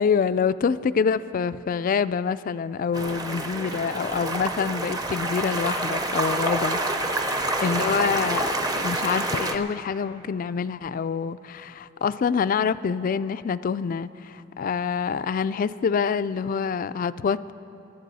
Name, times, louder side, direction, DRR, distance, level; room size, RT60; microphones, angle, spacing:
voice 1, 0.0-6.8 7.1-17.5, left 6 dB, 40° left, 15 dB, 0.3 m, -26 dB
sound 1, 2.9-9.6, right 2 dB, 20° right, 0.7 m, -27 dB
24.5 x 11.5 x 4.1 m, 2.8 s
head